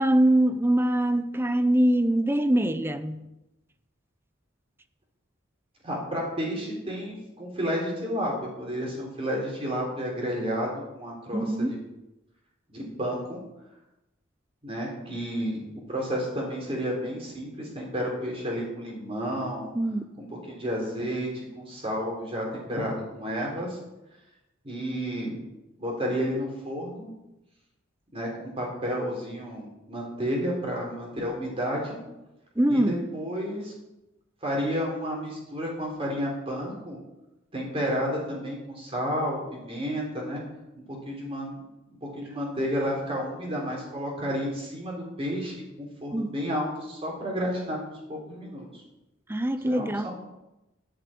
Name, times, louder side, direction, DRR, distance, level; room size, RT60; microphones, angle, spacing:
voice 1, 0.0-3.2 11.3-11.8 19.7-20.1 32.6-33.0 46.1-46.4 49.3-50.1, right 1 dB, 10° right, 0.5 m, -23 dB
voice 2, 5.8-8.3 8.6-11.8 12.7-13.4 14.6-15.6 15.9-19.7 20.2-23.8 24.6-25.4 25.8-27.1 28.1-32.0 32.7-33.7 34.4-37.0 37.5-40.4 41.1-41.6 41.9-47.8 48.1-48.8 49.6-50.1, equal, 30° right, 3.6 m, -31 dB
10.5 x 7.4 x 8.4 m
head